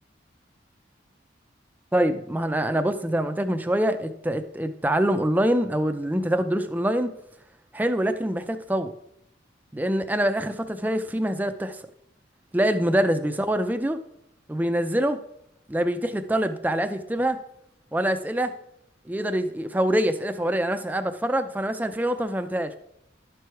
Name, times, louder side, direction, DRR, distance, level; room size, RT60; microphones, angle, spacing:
voice 1, 1.9-7.1 7.7-8.9 9.7-11.8 12.5-14.0 14.5-15.2 15.7-17.4 17.9-18.5 19.1-22.7, right 1 dB, 10° right, 8 dB, 0.4 m, -25 dB
11.5 x 4.6 x 4.6 m, 0.76 s
head